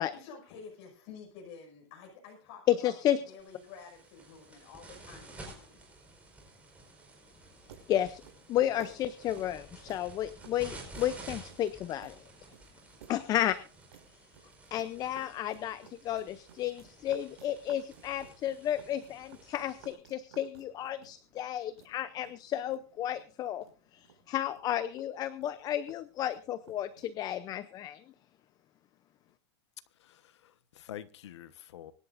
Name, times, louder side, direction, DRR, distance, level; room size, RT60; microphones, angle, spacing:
voice 1, 0.1-5.8, left 5 dB, 45° left, 5.9 m, -50 dB
voice 2, 2.7-3.2 7.9-8.2 8.5-12.3 13.1-13.6 14.7-23.7 23.9-28.0, left 12 dB, 25° left, 0.6 m, -32 dB
sound 1, 3.4-19.9, right 2 dB, 10° right, 5.0 m, -52 dB
sound 2, 7.4-27.3, right 8 dB, 80° right, 5.5 m, -58 dB
voice 3, 30.0-31.9, left 11 dB, 85° left, 1.2 m, -47 dB
25.0 x 11.5 x 2.6 m
supercardioid pair, 150°, 14 cm